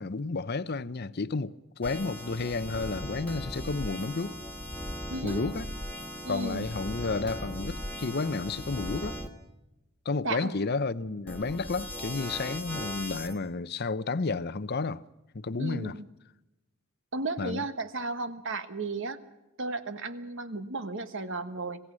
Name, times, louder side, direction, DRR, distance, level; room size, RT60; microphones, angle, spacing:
voice 1, 0.0-4.4 5.2-5.7 6.3-9.2 10.0-15.0 15.3-15.9 17.4-17.6, left 3 dB, 50° left, 0.7 m, -31 dB
sound 1, 1.8-9.3 11.3-13.4, equal, 5° left, 1.8 m, -38 dB
voice 2, 5.1-5.4 6.2-6.7 10.2-10.6 15.6-16.0 17.1-19.2 19.6-21.8, right 3 dB, 60° right, 1.4 m, -34 dB
26.5 x 17.0 x 6.3 m
head